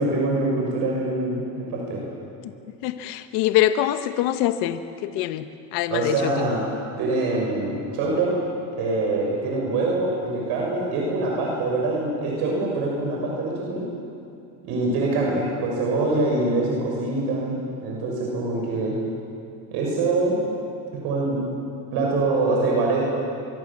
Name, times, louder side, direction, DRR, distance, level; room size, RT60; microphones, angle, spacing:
voice 1, 0.0-2.0 5.9-6.6 7.0-8.4 8.8-13.8 14.6-18.9 19.7-20.4 20.9-21.4 21.9-23.0, right 2 dB, 70° right, -2 dB, 6.9 m, -24 dB
voice 2, 2.8-6.5, left 13 dB, 75° left, 9 dB, 1.4 m, -24 dB
25.0 x 24.0 x 7.4 m, 2.6 s
cardioid pair, 125°, 42 cm